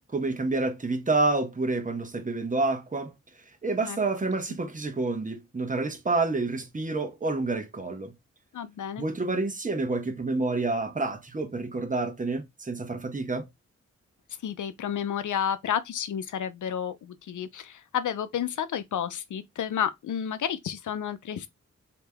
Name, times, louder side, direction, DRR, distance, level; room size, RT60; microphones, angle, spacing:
voice 1, 0.1-3.1 3.6-8.1 9.0-13.5, right 3 dB, 25° right, 1.1 m, -28 dB
voice 2, 8.5-9.0 14.4-21.5, left 9 dB, 70° left, 0.6 m, -31 dB
3.2 x 2.9 x 3.4 m
cardioid pair, 50°, 31 cm